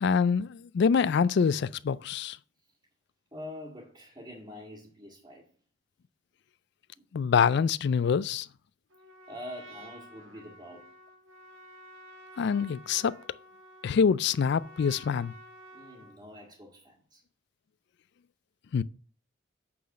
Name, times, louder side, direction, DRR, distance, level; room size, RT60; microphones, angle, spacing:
voice 1, 0.0-2.4 7.1-8.5 12.4-13.2 13.8-15.3 18.7-18.8, left 6 dB, 55° left, 0.3 m, -25 dB
voice 2, 3.3-5.5 7.0-7.1 9.3-11.0 15.7-17.2, left 1 dB, 20° right, 1.8 m, -45 dB
Trumpet, 8.9-16.2, equal, 75° right, 1.6 m, -51 dB
8.5 x 4.0 x 6.3 m
head